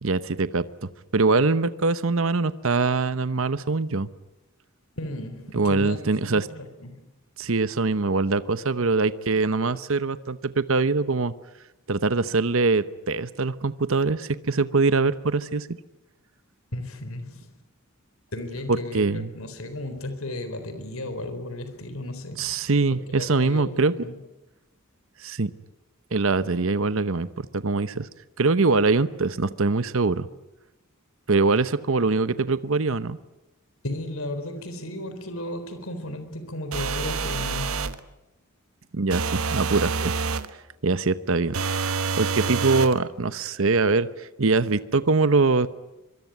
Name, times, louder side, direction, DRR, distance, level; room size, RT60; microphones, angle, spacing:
voice 1, 0.0-4.1 5.5-6.5 7.4-11.3 11.9-15.8 18.9-19.3 22.4-23.9 25.2-25.5 26.1-28.1 28.4-30.3 31.3-33.2 38.9-40.2 40.8-41.6 42.2-45.7, right 3 dB, 70° right, 14 dB, 0.9 m, -23 dB
voice 2, 5.0-7.0 16.7-17.5 18.3-22.6 23.1-24.2 33.8-37.9, left 1 dB, 80° left, 9 dB, 4.0 m, -35 dB
sound 1, 36.7-38.0 39.1-40.5 41.5-43.0, right 5 dB, 90° right, 1.3 m, -27 dB
24.5 x 24.0 x 9.3 m, 0.99 s
head